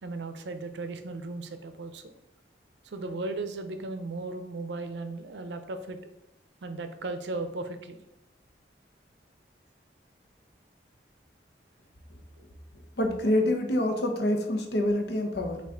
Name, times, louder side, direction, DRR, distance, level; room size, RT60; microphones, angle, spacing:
voice 1, 0.0-2.1 2.8-6.0 6.6-8.0, right 2 dB, 80° right, 9 dB, 0.5 m, -36 dB
voice 2, 13.0-15.6, left 1 dB, 70° left, 4 dB, 0.7 m, -26 dB
5.8 x 2.5 x 3.5 m, 0.91 s
head